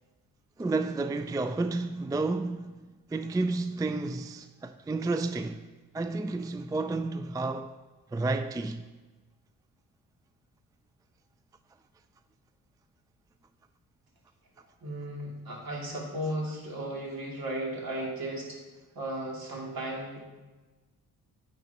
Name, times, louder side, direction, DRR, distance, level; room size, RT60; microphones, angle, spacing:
voice 1, 0.6-2.7 3.1-5.6 5.9-7.7 8.1-8.8, right 3 dB, 10° right, 0.4 m, -31 dB
voice 2, 14.8-18.6 18.9-20.2, right 1 dB, 60° right, 2.6 m, -35 dB
9.4 x 8.0 x 2.9 m
hypercardioid pair, 45°, 41 cm